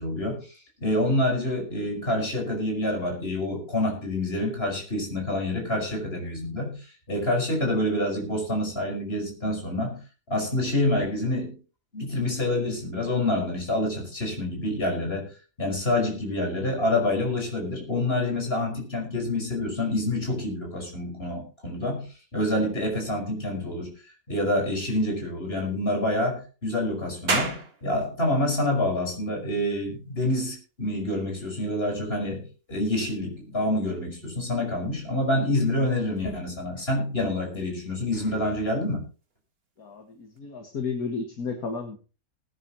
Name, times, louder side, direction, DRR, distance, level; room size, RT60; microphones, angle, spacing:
voice 1, 0.0-10.0 10.3-11.6 11.9-15.3 15.6-22.1 22.3-23.9 24.3-39.0, left 1 dB, 35° left, 1 dB, 5.6 m, -27 dB
sound 1, 27.3-40.4, right 3 dB, 35° right, 2.0 m, -40 dB
voice 2, 39.8-42.0, left 5 dB, 60° left, 4 dB, 2.3 m, -33 dB
20.5 x 10.5 x 3.1 m, 0.33 s
omnidirectional pair, 1.8 m